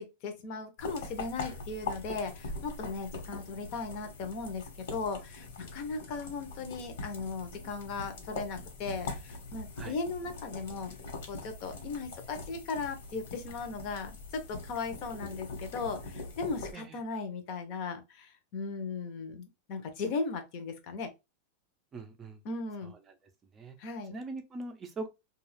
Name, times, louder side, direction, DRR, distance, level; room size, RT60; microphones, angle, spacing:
voice 1, 0.0-4.6 4.9-11.0 11.3-21.1 22.4-22.9 23.8-24.2, left 4 dB, 40° left, 0.8 m, -37 dB
sound 1, 0.8-16.7, left 3 dB, 70° left, 1.3 m, -42 dB
voice 2, 21.9-22.4 22.8-23.0 23.5-23.8 24.1-25.1, right 3 dB, 20° right, 0.5 m, -41 dB
2.4 x 2.3 x 3.2 m
supercardioid pair, 160°, 0 cm